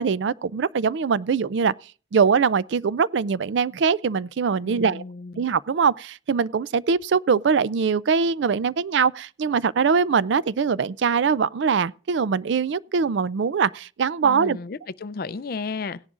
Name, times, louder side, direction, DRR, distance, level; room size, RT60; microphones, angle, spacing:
voice 1, 0.0-1.7 2.1-5.0 5.4-14.6, right 6 dB, 65° right, 0.4 m, -22 dB
voice 2, 4.6-5.4 14.2-16.0, left 4 dB, 50° left, 0.5 m, -33 dB
17.0 x 11.0 x 2.5 m
head